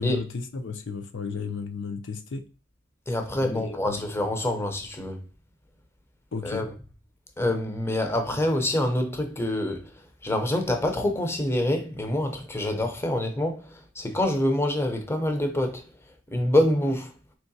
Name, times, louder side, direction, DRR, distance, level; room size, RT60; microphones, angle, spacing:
voice 1, 0.0-2.4 3.4-4.0 6.3-6.6, left 5 dB, 65° left, 0.5 m, -33 dB
voice 2, 3.1-5.2 6.4-6.6 7.4-9.9 10.2-15.8 16.3-17.1, left 1 dB, 15° left, 0.6 m, -26 dB
4.7 x 3.0 x 2.7 m
head